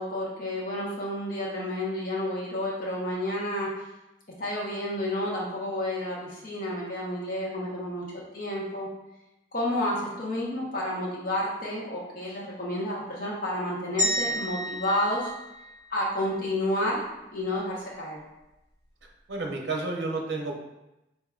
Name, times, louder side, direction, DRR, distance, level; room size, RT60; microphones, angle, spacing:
voice 1, 0.0-3.7 4.4-8.0 8.3-8.9 9.5-15.3 15.9-17.0 17.3-18.2, left 1 dB, 50° left, -5 dB, 0.9 m, -30 dB
sound 1, 14.0-16.2, equal, 25° left, 1.5 m, -31 dB
voice 2, 19.3-20.5, right 3 dB, 60° right, 1 dB, 0.7 m, -30 dB
5.6 x 3.5 x 2.4 m, 0.93 s
head